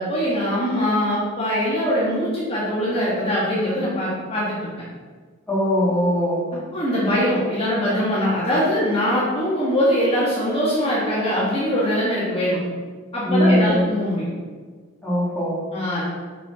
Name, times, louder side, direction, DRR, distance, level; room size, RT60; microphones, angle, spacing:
voice 1, 0.0-4.7 6.7-12.6 13.1-14.3 15.7-16.0, equal, 30° left, -8 dB, 1.5 m, -22 dB
voice 2, 5.5-6.4 13.2-13.9 15.0-15.6, equal, 10° left, -7 dB, 1.8 m, -20 dB
5.9 x 5.8 x 3.6 m, 1.5 s
head